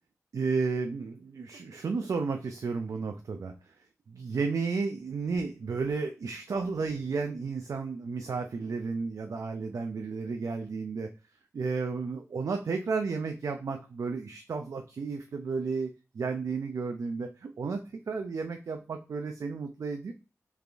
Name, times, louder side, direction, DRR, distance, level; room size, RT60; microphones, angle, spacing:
voice 1, 0.3-3.5 4.1-11.1 11.5-20.1, right 4 dB, 75° right, 5 dB, 0.4 m, -32 dB
3.3 x 3.3 x 2.5 m, 0.31 s
wide cardioid pair, 90°, 6 cm